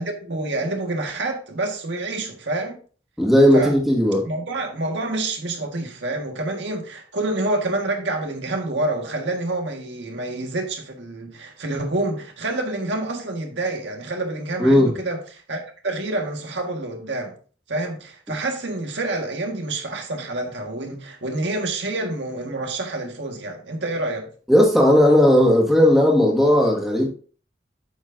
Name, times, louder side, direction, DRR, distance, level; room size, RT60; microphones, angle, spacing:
voice 1, 0.0-2.8 3.5-3.7 4.2-17.3 17.7-24.3, right 2 dB, 80° right, 1.6 m, -27 dB
voice 2, 3.2-4.3 14.6-14.9 24.5-27.1, left 1 dB, ahead, 1.7 m, -16 dB
8.8 x 6.9 x 2.6 m
head